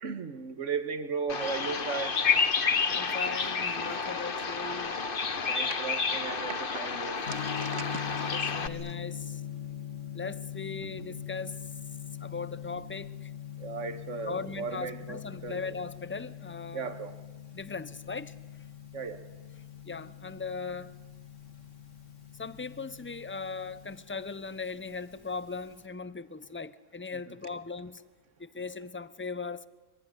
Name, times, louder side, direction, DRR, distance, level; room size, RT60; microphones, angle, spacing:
voice 1, 0.0-2.2 5.4-8.0 13.6-15.7 16.7-17.1 18.9-19.2 27.1-27.3, right 5 dB, 75° right, 9 dB, 1.8 m, -36 dB
Bird vocalization bird call bird song, 1.3-8.7, left 5 dB, 45° left, 1.3 m, -30 dB
voice 2, 2.9-5.0 8.1-9.4 10.1-11.7 12.2-13.3 14.3-17.0 17.5-18.3 19.9-20.9 22.4-28.0 28.4-29.7, left 4 dB, 15° left, 15 dB, 0.5 m, -39 dB
Gong, 7.2-25.8, left 9 dB, 75° left, 2.9 m, -42 dB
24.0 x 23.0 x 9.9 m, 1.3 s
omnidirectional pair, 1.3 m